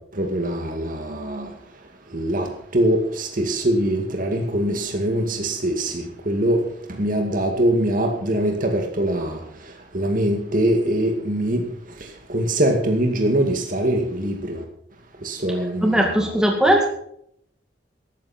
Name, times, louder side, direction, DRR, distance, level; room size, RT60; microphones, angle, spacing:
voice 1, 0.1-1.5 2.1-6.6 6.9-11.6 12.0-14.6 15.2-16.1, right 1 dB, 45° right, 2.3 m, -23 dB
voice 2, 15.8-16.9, right 1 dB, 5° right, 2.0 m, -18 dB
14.0 x 13.0 x 4.4 m
head